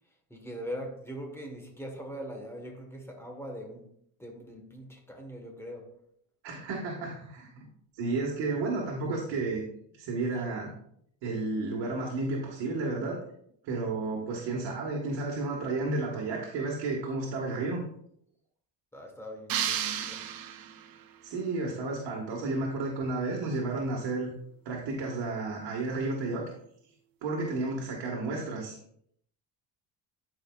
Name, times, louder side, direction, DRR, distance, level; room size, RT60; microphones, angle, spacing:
voice 1, 0.3-3.9 4.2-6.0 10.3-10.4 18.9-20.3, equal, 5° left, 1.3 m, -41 dB
voice 2, 6.4-7.5 8.0-9.6 10.0-10.7 11.2-13.2 13.6-17.8 21.2-24.3 24.6-26.4 27.2-28.8, right 3 dB, 65° right, 1.7 m, -32 dB
sound 1, 19.5-21.0, right 10 dB, 50° right, 0.7 m, -32 dB
13.0 x 5.0 x 2.4 m
cardioid pair, 150°, 44 cm